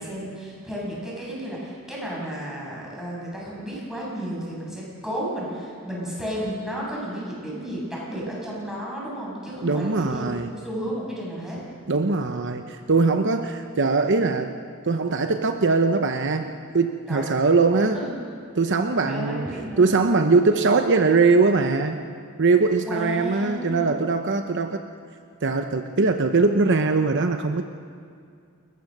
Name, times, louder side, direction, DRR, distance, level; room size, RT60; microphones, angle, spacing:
voice 1, 0.0-11.6 17.1-17.3 17.9-18.1 19.0-20.0 22.8-23.9, equal, ahead, -5 dB, 7.4 m, -33 dB
voice 2, 9.6-10.5 11.9-14.5 14.8-18.0 18.6-19.5 19.8-22.0 22.4-24.8 25.4-27.6, right 3 dB, 60° right, 6 dB, 0.9 m, -21 dB
29.5 x 14.5 x 6.7 m, 2.3 s
head